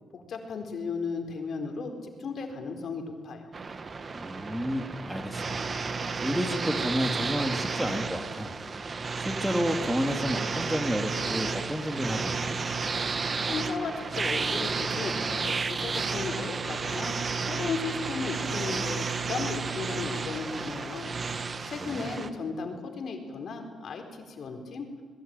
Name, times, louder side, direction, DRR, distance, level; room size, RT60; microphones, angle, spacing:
voice 1, 0.1-3.5 13.5-21.1 21.7-24.9, left 4 dB, 60° left, 4 dB, 4.3 m, -35 dB
sound 1, 3.5-22.3, right 4 dB, 35° right, 1.5 m, -32 dB
voice 2, 4.1-5.6 6.2-8.5 9.2-12.6 21.8-22.1, equal, 5° right, 5 dB, 2.5 m, -31 dB
25.5 x 21.5 x 9.1 m, 1.5 s
cardioid pair, 100°, 0 cm